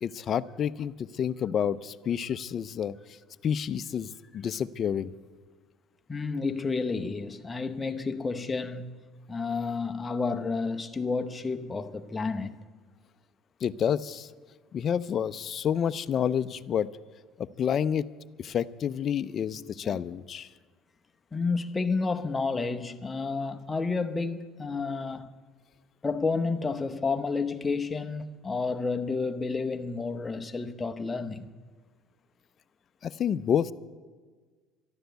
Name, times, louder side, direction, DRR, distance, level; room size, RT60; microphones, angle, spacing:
voice 1, 0.0-3.0 3.4-5.1 13.6-14.3 14.7-16.9 17.4-18.1 18.4-20.5 33.0-33.7, left 8 dB, 40° left, 0.5 m, -29 dB
voice 2, 6.1-9.0 9.3-12.6 19.6-20.0 21.3-25.3 26.0-31.5, left 4 dB, 15° left, 0.8 m, -30 dB
12.5 x 11.5 x 8.0 m
cardioid pair, 120°, 0 cm